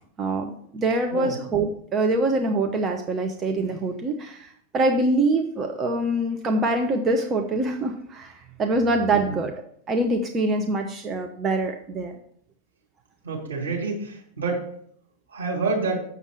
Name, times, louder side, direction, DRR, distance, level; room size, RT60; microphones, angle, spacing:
voice 1, 0.2-9.5 9.9-12.1, right 2 dB, 25° right, 4 dB, 0.9 m, -24 dB
voice 2, 13.2-14.6 15.3-16.0, right 3 dB, 70° right, -2 dB, 3.4 m, -28 dB
7.3 x 6.8 x 6.5 m, 0.65 s
figure-of-eight pair, 90°, 0 cm